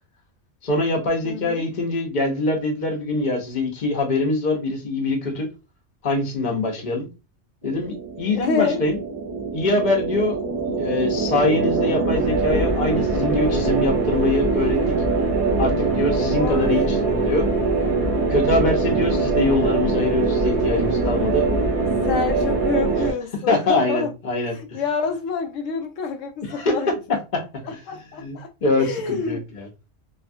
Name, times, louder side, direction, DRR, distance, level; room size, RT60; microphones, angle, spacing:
voice 1, 0.6-5.5 6.0-7.1 7.6-9.0 9.5-15.0 15.6-17.5 18.3-21.5 23.5-24.8 26.4-26.8 27.1-27.4 27.7-27.8 28.2-29.7, left 2 dB, 40° left, 0.9 m, -23 dB
voice 2, 1.2-1.6 8.4-8.8 16.4-17.3 22.0-24.1 24.4-26.9 27.6-28.5 28.8-29.4, left 5 dB, 85° left, 0.9 m, -27 dB
sound 1, 7.6-23.1, right 3 dB, 40° right, 0.6 m, -22 dB
2.7 x 2.3 x 2.6 m
omnidirectional pair, 1.3 m